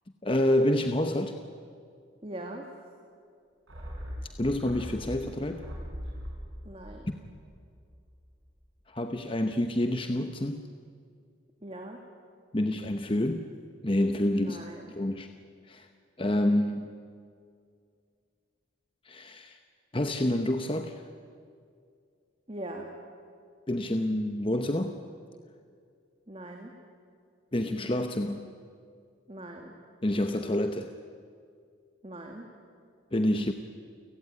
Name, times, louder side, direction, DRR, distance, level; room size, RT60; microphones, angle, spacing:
voice 1, 0.2-1.3 4.4-5.7 7.1-7.2 8.9-10.6 12.5-13.5 13.8-14.6 14.9-15.3 15.7-15.9 16.2-16.9 19.0-19.6 19.9-21.0 23.7-25.0 27.5-28.5 30.0-30.9 33.1-33.5, left 1 dB, 25° left, 6 dB, 0.9 m, -28 dB
voice 2, 2.2-2.7 6.7-7.1 11.6-12.0 14.4-14.9 22.5-22.9 26.3-26.7 29.3-29.7 32.0-32.5, right 1 dB, 30° right, 2 dB, 2.0 m, -41 dB
sound 1, 3.7-8.3 8.6-8.7, equal, 85° right, 6.8 m, -41 dB
29.5 x 16.5 x 9.7 m, 2.3 s
head